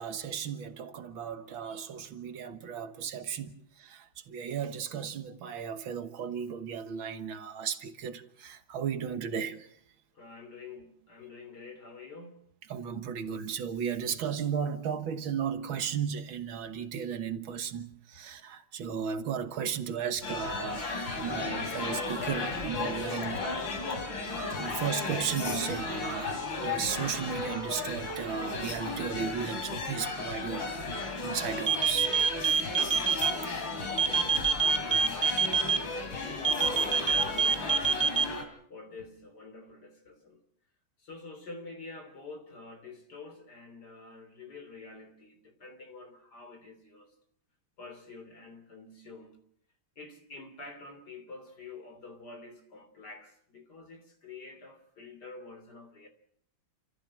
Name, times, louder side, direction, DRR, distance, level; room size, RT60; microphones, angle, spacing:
voice 1, 0.0-9.7 12.7-23.6 24.6-26.4 26.6-32.1, right 7 dB, 80° right, 2.1 m, -35 dB
voice 2, 10.1-12.4 33.3-38.2 38.7-40.4 41.0-47.1 47.8-49.4 50.0-56.1, left 3 dB, 55° left, 3.8 m, -48 dB
sound 1, 20.2-38.4, left 3 dB, 70° left, 3.9 m, -35 dB
sound 2, 31.6-33.3 34.0-35.8 36.4-38.2, right 6 dB, 30° right, 0.6 m, -25 dB
28.5 x 14.5 x 7.5 m
omnidirectional pair, 2.2 m